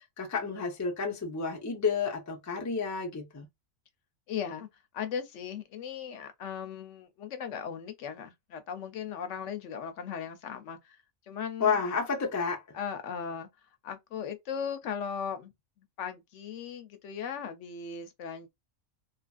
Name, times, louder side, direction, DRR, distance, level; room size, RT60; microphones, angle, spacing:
voice 1, 0.0-3.5 11.6-12.6, left 5 dB, 25° left, 0.4 m, -30 dB
voice 2, 4.3-4.7 4.9-11.0 11.3-11.8 12.7-13.5 13.8-15.5 16.0-18.5, left 7 dB, 70° left, 0.9 m, -37 dB
2.9 x 2.5 x 2.3 m
omnidirectional pair, 1.3 m